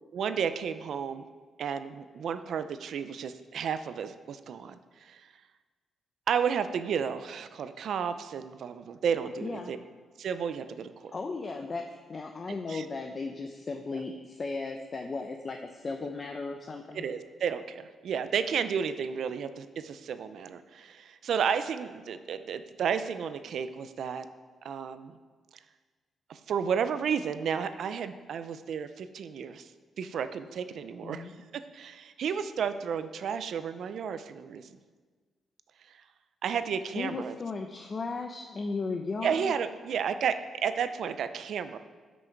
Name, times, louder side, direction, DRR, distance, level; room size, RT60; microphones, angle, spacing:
voice 1, 0.1-1.2 1.6-5.3 6.3-9.8 10.2-11.1 12.7-12.8 13.9-14.0 16.9-24.3 24.6-25.2 26.3-29.7 30.0-34.7 35.9-36.0 36.4-37.4 39.2-41.8, right 7 dB, 70° right, 11 dB, 0.6 m, -32 dB
voice 2, 9.4-9.7 11.1-17.0 31.0-31.3 37.0-39.5, left 3 dB, 35° left, 4 dB, 0.7 m, -36 dB
14.0 x 6.2 x 4.6 m, 1.4 s
cardioid pair, 110°, 0 cm